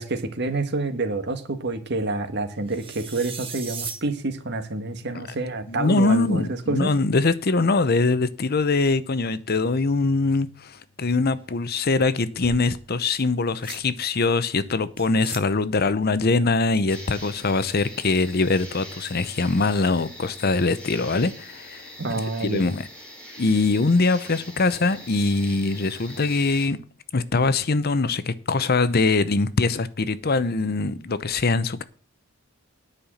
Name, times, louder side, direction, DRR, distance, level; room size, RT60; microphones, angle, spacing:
voice 1, 0.0-6.9 22.0-22.6, right 2 dB, 60° right, 1.6 m, -28 dB
sound 1, 2.7-4.1 5.3-5.4 5.8-5.9 6.6-7.0 12.2-12.8 13.6-13.8 15.0-15.4, right 5 dB, 30° right, 1.9 m, -37 dB
voice 2, 5.7-22.8 23.4-26.8 27.1-31.8, left 3 dB, 50° left, 0.8 m, -23 dB
sound 2, 16.9-26.7, equal, 5° left, 4.6 m, -43 dB
10.0 x 5.7 x 8.5 m
head